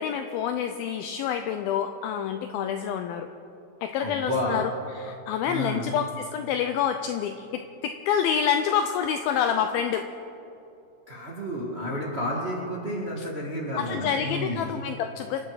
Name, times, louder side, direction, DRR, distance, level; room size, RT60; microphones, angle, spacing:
voice 1, 0.0-3.3 3.8-4.7 5.0-10.1 13.2-13.3 13.8-15.4, left 8 dB, 80° left, 7 dB, 2.2 m, -27 dB
voice 2, 4.0-4.6 5.5-5.9 11.1-14.6, left 1 dB, 70° right, -3 dB, 0.6 m, -30 dB
26.5 x 9.2 x 4.9 m, 2.8 s
omnidirectional pair, 4.7 m